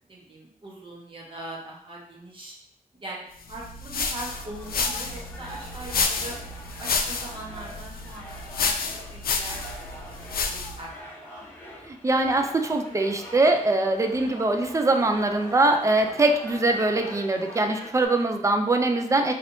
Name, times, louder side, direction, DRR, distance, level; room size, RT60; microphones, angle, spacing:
voice 1, 0.1-2.6 3.0-6.4 6.8-8.8 9.1-11.8 14.1-14.4, right 2 dB, 35° right, -3 dB, 1.1 m, -41 dB
sound 1, 3.5-10.9, left 4 dB, 85° left, 0.4 m, -30 dB
sound 2, 4.2-18.1, equal, 15° left, 1.0 m, -43 dB
voice 2, 11.9-19.3, right 2 dB, 20° right, 5 dB, 0.4 m, -22 dB
4.1 x 3.3 x 2.6 m, 0.70 s
wide cardioid pair, 135°, 15 cm